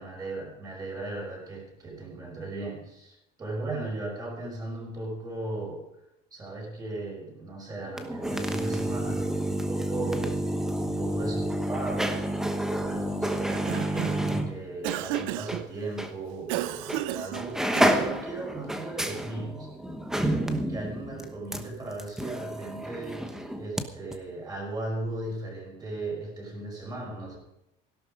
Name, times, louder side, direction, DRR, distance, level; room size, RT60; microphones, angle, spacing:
voice 1, 0.0-5.8 6.3-10.4 10.9-19.7 20.2-27.4, right 2 dB, 20° right, -1 dB, 5.3 m, -37 dB
sound 1, 7.9-15.6 16.0-16.1 16.9-17.1 17.3-23.8 24.1-24.2, right 1 dB, ahead, 1.1 m, -30 dB
Cough, 13.3-14.3 14.8-15.7 16.5-18.2, right 15 dB, 85° right, 0.7 m, -33 dB
16.5 x 12.0 x 5.1 m, 0.85 s
cardioid pair, 170°, 20 cm